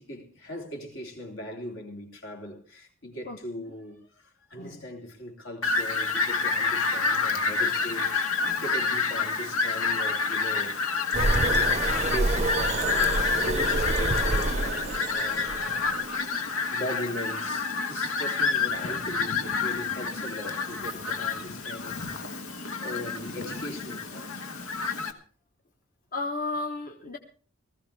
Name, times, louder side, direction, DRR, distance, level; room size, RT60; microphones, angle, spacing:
voice 1, 0.0-11.3 12.1-15.5 16.7-22.4 22.8-24.5, equal, 65° left, 3.4 m, -39 dB
Fowl, 5.6-25.1, left 4 dB, 85° left, 1.5 m, -28 dB
sound 1, 11.1-16.2, right 2 dB, 30° right, 0.6 m, -28 dB
voice 2, 26.1-27.2, left 2 dB, 40° left, 1.2 m, -33 dB
19.5 x 15.0 x 3.5 m
head